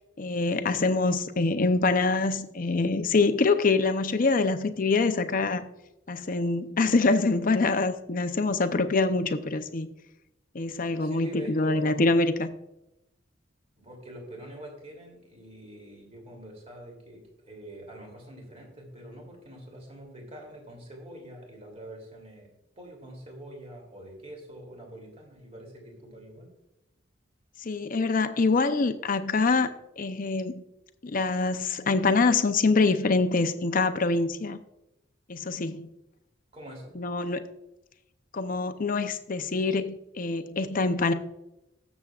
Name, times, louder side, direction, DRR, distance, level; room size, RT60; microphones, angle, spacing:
voice 1, 0.2-5.7 6.1-9.9 10.5-12.5 27.6-30.6 31.0-34.6 35.3-35.9 37.0-37.4 38.3-41.1, left 3 dB, 45° left, 9 dB, 0.6 m, -25 dB
voice 2, 11.0-12.1 13.8-22.5 22.8-26.5 36.5-36.9, right 1 dB, 35° right, 0 dB, 2.8 m, -45 dB
19.0 x 7.2 x 2.4 m, 0.88 s
head